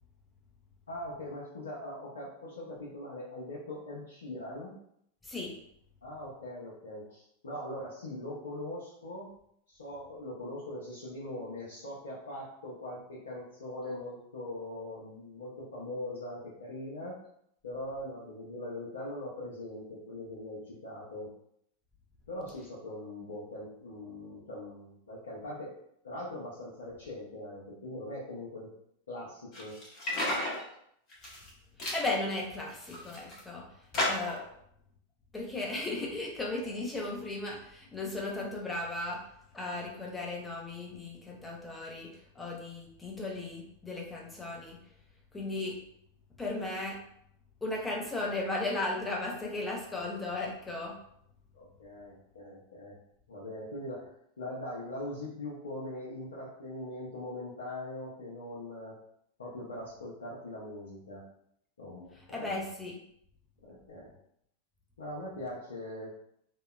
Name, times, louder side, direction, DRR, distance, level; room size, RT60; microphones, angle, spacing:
voice 1, 0.9-4.8 6.0-9.3 9.7-17.2 17.6-21.3 22.3-25.7 26.0-28.7 29.1-29.8 51.5-53.0 53.3-59.0 59.4-61.2 61.8-62.5 63.6-64.1 65.0-66.1, left 1 dB, 70° left, -7 dB, 0.6 m, -41 dB
sound 1, 29.5-30.6 31.1-31.5 31.8-32.0 32.6-33.4 33.9-34.4, left 1 dB, 35° left, 0.9 m, -33 dB
voice 2, 31.9-33.6 34.0-34.4 35.3-39.2 39.5-44.8 45.3-45.8 46.4-47.0 47.6-50.9 62.3-63.0, left 2 dB, 10° left, -2 dB, 0.5 m, -36 dB
2.7 x 2.1 x 2.3 m, 0.72 s
figure-of-eight pair, 90°, 0 cm